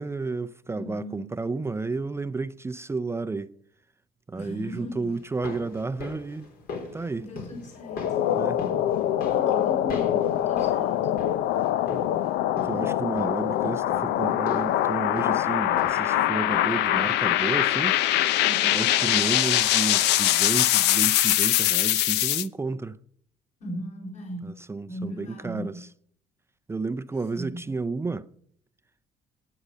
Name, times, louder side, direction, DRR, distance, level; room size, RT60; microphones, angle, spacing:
voice 1, 0.0-3.5 4.3-6.5 6.9-7.3 8.3-8.6 11.9-12.0 12.7-18.0 18.7-23.0 24.4-25.9 26.7-28.3, right 3 dB, 15° right, 0.5 m, -31 dB
voice 2, 0.7-1.3 4.3-5.1 7.2-8.4 9.2-11.3 18.4-18.9 23.6-24.6 24.9-25.8 27.3-27.7, equal, 45° left, 5.5 m, -38 dB
sound 1, 5.2-16.2 16.4-16.5, left 4 dB, 60° left, 3.8 m, -40 dB
sound 2, 7.8-22.5, left 13 dB, 85° left, 0.6 m, -23 dB
11.5 x 9.6 x 6.6 m
cardioid pair, 110°, 17 cm